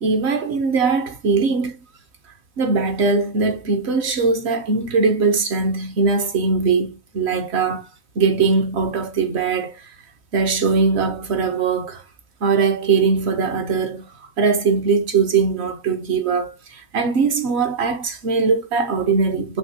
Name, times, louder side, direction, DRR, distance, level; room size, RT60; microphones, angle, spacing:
voice 1, 0.0-1.8 2.6-7.9 8.2-9.9 10.3-12.0 12.4-19.6, right 4 dB, 60° right, 0.8 m, -20 dB
5.9 x 2.8 x 2.7 m
omnidirectional pair, 1.5 m